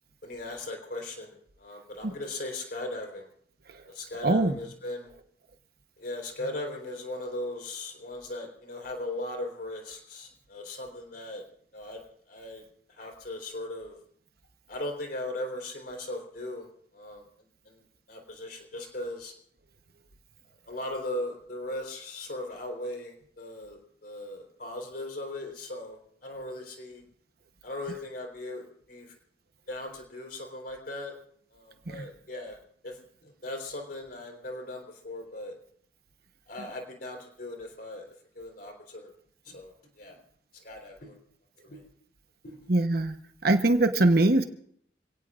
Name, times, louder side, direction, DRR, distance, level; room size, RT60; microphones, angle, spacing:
voice 1, 0.2-3.3 3.9-5.1 6.0-11.4 11.7-12.0 12.3-12.6 13.0-14.0 14.7-16.7 16.9-17.3 17.7-17.8 18.1-19.3 20.7-27.0 27.6-29.1 29.7-31.1 31.5-32.6 32.8-35.6 36.5-38.1 38.4-39.1 39.5-40.2 40.6-41.2 41.6-41.8 42.4-42.6, left 1 dB, 55° left, 2 dB, 4.0 m, -38 dB
voice 2, 4.2-4.6 31.9-32.1 42.7-43.2 43.4-44.4, right 2 dB, 60° right, 7 dB, 1.0 m, -22 dB
27.5 x 17.5 x 2.5 m, 0.65 s
head